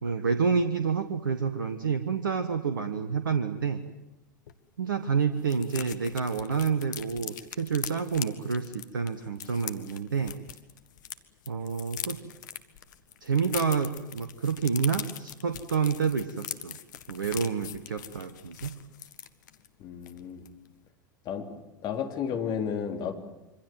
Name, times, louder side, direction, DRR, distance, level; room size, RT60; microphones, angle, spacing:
voice 1, 0.0-3.8 4.8-10.3 11.5-12.3 13.2-16.8 17.1-18.7, right 5 dB, 75° right, 9 dB, 1.3 m, -28 dB
sound 1, 4.5-4.6 4.8-4.9 5.2-11.1 11.4-19.7 20.0-20.2 20.4-20.7, left 11 dB, 65° left, 1.6 m, -41 dB
voice 2, 19.8-20.4 21.3-23.1, left 7 dB, 40° left, 4 dB, 3.6 m, -33 dB
26.5 x 25.0 x 7.8 m, 1.0 s
figure-of-eight pair, 85°, 11 cm